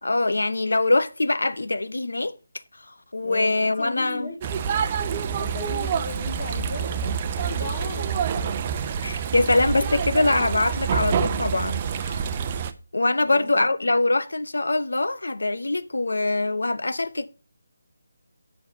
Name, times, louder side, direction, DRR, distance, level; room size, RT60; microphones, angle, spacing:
voice 1, 0.0-2.4 2.9-4.3 9.0-12.3 12.9-17.3, left 2 dB, 85° left, 0.8 m, -23 dB
voice 2, 3.2-4.4 5.3-8.6 11.2-11.3 13.2-13.9, left 2 dB, 35° left, 1.8 m, -37 dB
sound 1, 4.4-12.7, right 7 dB, 25° right, 0.6 m, -27 dB
7.2 x 6.3 x 5.2 m
figure-of-eight pair, 165°, 0 cm